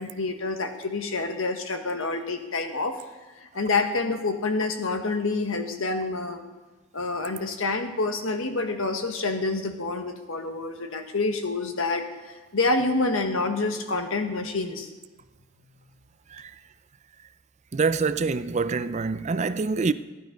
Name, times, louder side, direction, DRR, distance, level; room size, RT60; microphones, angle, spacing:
voice 1, 0.0-3.0 3.4-6.4 6.9-14.9, left 3 dB, 75° left, 1.4 m, -27 dB
voice 2, 17.7-19.9, right 4 dB, 35° right, 0.4 m, -25 dB
15.0 x 11.0 x 5.2 m
head